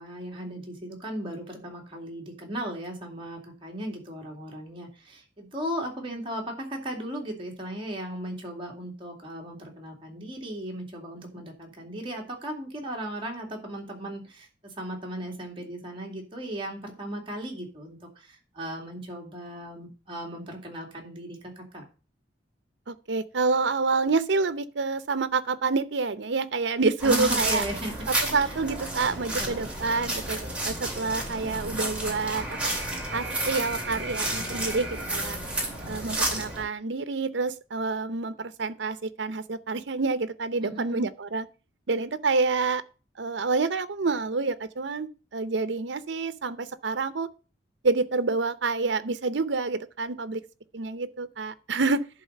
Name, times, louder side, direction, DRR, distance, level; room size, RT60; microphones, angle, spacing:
voice 1, 0.0-21.8 27.0-28.1 28.4-28.5 29.4-29.7 40.6-41.0, right 1 dB, 30° right, 2.4 m, -36 dB
voice 2, 22.9-27.6 28.1-32.6 33.1-35.4 35.9-41.5 41.9-42.8 43.2-47.3 47.8-50.4 50.7-52.0, right 4 dB, 75° right, 0.7 m, -28 dB
sound 1, 27.0-36.6, right 1 dB, 5° right, 2.6 m, -31 dB
11.0 x 3.9 x 6.5 m
head